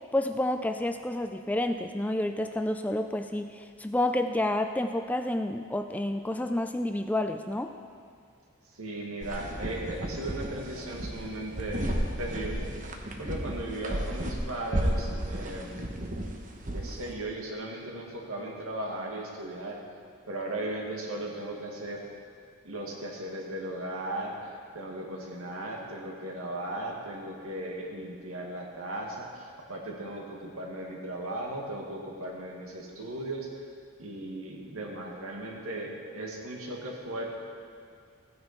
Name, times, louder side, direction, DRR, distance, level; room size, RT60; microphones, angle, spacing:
voice 1, 0.1-7.7, left 1 dB, 5° left, 7 dB, 0.3 m, -29 dB
voice 2, 8.7-12.7 13.2-16.0 16.7-19.8 20.3-22.0 22.6-33.6 34.0-37.4, right 1 dB, 80° right, -1 dB, 2.0 m, -37 dB
sound 1, 9.2-17.1, right 1 dB, 35° right, 1.1 m, -33 dB
15.5 x 9.6 x 4.3 m, 2.2 s
head